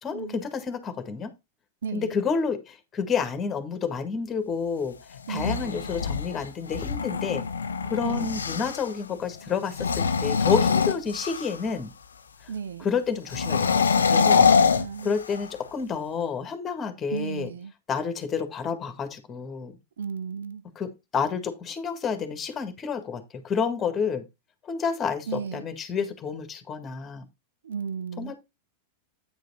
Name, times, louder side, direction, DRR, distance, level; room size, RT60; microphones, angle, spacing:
voice 1, 0.0-1.3 1.9-5.0 5.3-7.4 7.8-11.9 12.4-12.5 12.8-17.5 17.9-19.8 20.8-24.2 24.6-27.3 28.2-28.4, left 6 dB, 25° left, 1.8 m, -30 dB
voice 2, 1.8-2.1 5.3-5.9 8.0-8.3 12.5-12.9 14.7-15.2 17.1-17.7 20.0-20.6 25.3-25.6 27.6-28.3, right 6 dB, 65° right, 0.5 m, -34 dB
sound 1, 5.2-8.9 9.7-11.7 13.3-15.6, left 5 dB, 70° left, 0.7 m, -24 dB
9.2 x 5.1 x 4.1 m
figure-of-eight pair, 90°, 0 cm